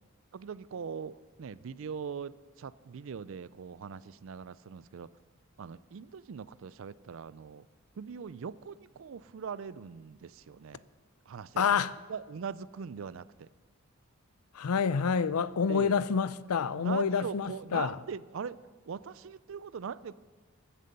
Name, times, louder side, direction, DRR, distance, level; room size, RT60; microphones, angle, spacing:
voice 1, 0.3-5.1 5.6-7.7 8.0-10.8 11.3-11.8 12.1-13.5 15.7-16.0 16.7-18.6 18.9-20.2, right 6 dB, 65° right, 0.4 m, -41 dB
voice 2, 11.6-11.9 14.5-18.0, left 6 dB, 90° left, 0.5 m, -28 dB
14.5 x 10.5 x 5.4 m
head